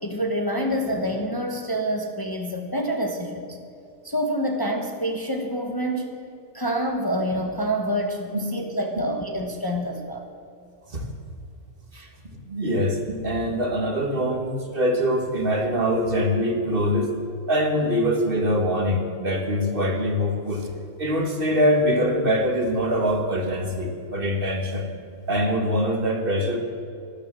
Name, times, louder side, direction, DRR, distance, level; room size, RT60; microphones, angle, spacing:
voice 1, 0.0-3.6 4.0-6.2 6.5-10.3 11.9-12.1, equal, 20° left, 3 dB, 1.1 m, -27 dB
voice 2, 12.5-17.1 17.5-20.7 21.0-24.9 25.3-26.6, equal, 45° right, 3 dB, 1.9 m, -23 dB
12.5 x 12.0 x 7.6 m, 2.6 s
omnidirectional pair, 1.4 m